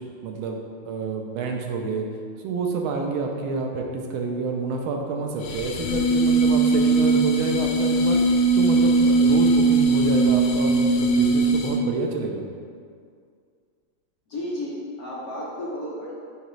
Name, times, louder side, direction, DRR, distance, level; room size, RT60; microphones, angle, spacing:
voice 1, 0.2-2.1 2.4-8.2 8.5-12.5, right 3 dB, 80° right, 2 dB, 1.4 m, -28 dB
sound 1, 5.4-11.9, right 3 dB, 85° left, 0.9 m, -20 dB
voice 2, 14.3-16.1, left 1 dB, 55° left, -6 dB, 1.1 m, -32 dB
6.6 x 4.8 x 3.1 m, 2.1 s
omnidirectional pair, 2.4 m